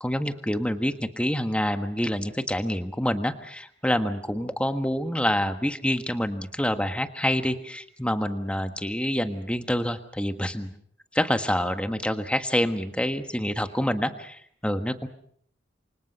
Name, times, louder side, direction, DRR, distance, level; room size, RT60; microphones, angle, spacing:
voice 1, 0.0-10.7 11.1-15.1, equal, 5° left, 8 dB, 1.5 m, -27 dB
28.5 x 25.0 x 5.5 m, 0.63 s
head